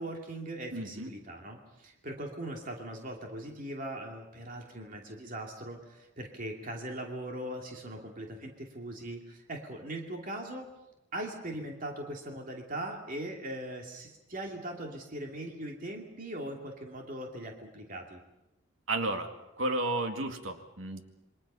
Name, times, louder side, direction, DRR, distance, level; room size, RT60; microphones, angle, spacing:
voice 1, 0.0-10.7 11.1-18.2, right 1 dB, 40° right, 1 dB, 2.7 m, -40 dB
voice 2, 0.7-1.1 18.9-19.3 19.6-21.0, right 2 dB, 70° right, 5 dB, 2.2 m, -32 dB
28.0 x 24.0 x 5.6 m, 0.93 s
head